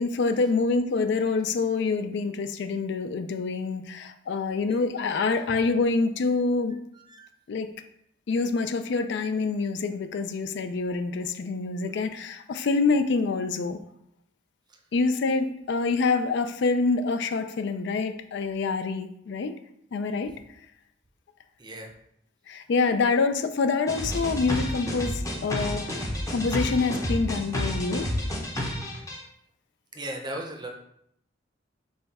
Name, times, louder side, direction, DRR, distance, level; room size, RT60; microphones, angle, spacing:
voice 1, 0.0-6.7 7.5-7.7 8.3-13.8 14.9-19.5 19.9-20.3 22.5-28.1, left 4 dB, 65° left, 8 dB, 0.4 m, -26 dB
voice 2, 21.6-21.9 29.9-30.7, right 1 dB, 25° right, 2 dB, 0.6 m, -36 dB
sound 1, 23.9-29.2, left 1 dB, 20° left, 0.7 m, -30 dB
5.6 x 2.3 x 4.1 m, 0.74 s
head